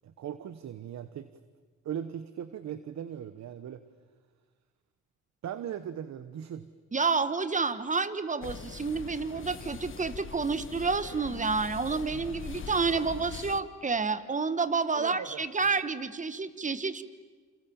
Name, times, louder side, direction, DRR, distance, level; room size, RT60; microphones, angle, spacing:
voice 1, 0.0-1.3 1.8-3.8 5.4-6.7 14.9-15.4, right 9 dB, 65° right, 12 dB, 1.2 m, -39 dB
voice 2, 6.9-17.0, right 4 dB, 25° right, 12 dB, 1.5 m, -29 dB
sound 1, 8.4-13.6, left 6 dB, 40° left, 1.3 m, -42 dB
28.5 x 28.5 x 7.2 m, 1.5 s
cardioid pair, 90°, 30 cm